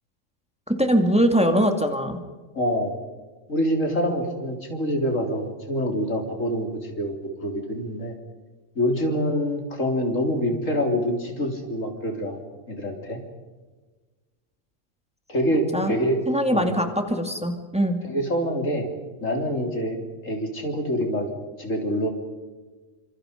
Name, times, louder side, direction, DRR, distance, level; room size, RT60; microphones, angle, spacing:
voice 1, 0.7-2.2 15.7-15.9 16.3-18.0, equal, 5° right, 4 dB, 2.4 m, -22 dB
voice 2, 2.5-2.9 3.5-7.2 7.4-8.2 8.8-12.4 12.7-13.2 15.3-16.2 16.5-16.7 18.0-18.9 19.2-20.0 20.2-21.3 21.6-22.1, equal, 85° left, 2 dB, 4.1 m, -25 dB
28.5 x 26.0 x 5.2 m, 1.3 s
omnidirectional pair, 1.3 m